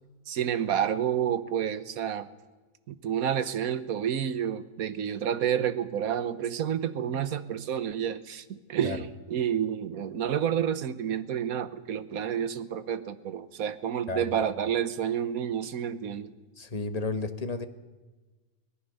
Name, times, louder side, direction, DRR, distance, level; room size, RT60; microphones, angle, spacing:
voice 1, 0.3-2.3 2.9-16.3, right 9 dB, 70° right, 13 dB, 1.4 m, -29 dB
voice 2, 14.1-14.4 16.6-17.7, left 3 dB, 30° left, 9 dB, 1.2 m, -32 dB
24.5 x 18.0 x 6.7 m, 1.2 s
omnidirectional pair, 1.6 m